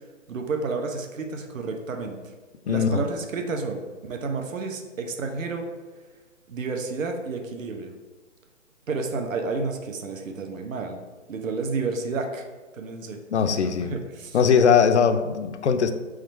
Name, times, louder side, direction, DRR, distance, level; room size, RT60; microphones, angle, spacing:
voice 1, 0.3-2.2 2.7-5.7 6.5-7.9 8.9-12.4 12.7-13.2 13.6-14.4, right 4 dB, 80° right, 4 dB, 0.8 m, -31 dB
voice 2, 2.7-3.0 13.3-13.9 14.3-15.9, left 6 dB, 60° left, 9 dB, 0.5 m, -20 dB
3.7 x 3.2 x 4.3 m, 1.3 s
hypercardioid pair, 175°, 39 cm